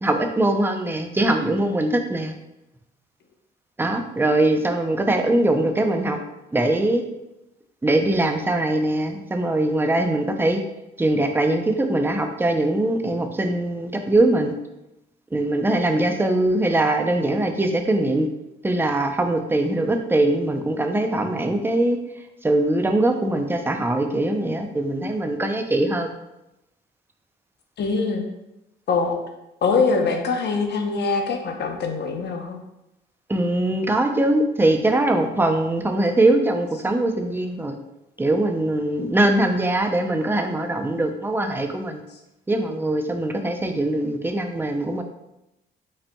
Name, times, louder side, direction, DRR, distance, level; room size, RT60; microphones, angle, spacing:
voice 1, 0.0-2.3 3.8-6.2 6.5-7.0 7.8-10.6 11.0-14.5 15.3-18.3 18.6-22.0 22.4-26.1 33.3-37.8 38.2-42.0 42.5-45.0, right 1 dB, 10° right, 5 dB, 0.5 m, -22 dB
voice 2, 27.8-28.3 28.9-29.2 29.6-32.6, left 4 dB, 60° left, 3 dB, 0.8 m, -23 dB
5.2 x 4.1 x 2.3 m, 0.89 s
cardioid pair, 90°, 20 cm